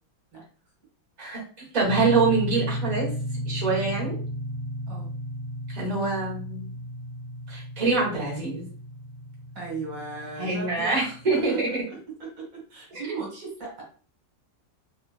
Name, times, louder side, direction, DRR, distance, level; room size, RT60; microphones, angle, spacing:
voice 1, 1.2-3.1 3.4-4.2 5.7-6.7 7.5-8.6 10.4-11.8 12.9-13.0, right 3 dB, 25° right, -4 dB, 1.3 m, -25 dB
sound 1, 1.8-11.4, equal, 65° left, 1.0 m, -34 dB
voice 2, 9.6-11.6 11.9-13.8, right 4 dB, 75° right, -2 dB, 2.2 m, -37 dB
3.7 x 3.0 x 2.3 m, 0.42 s
omnidirectional pair, 2.0 m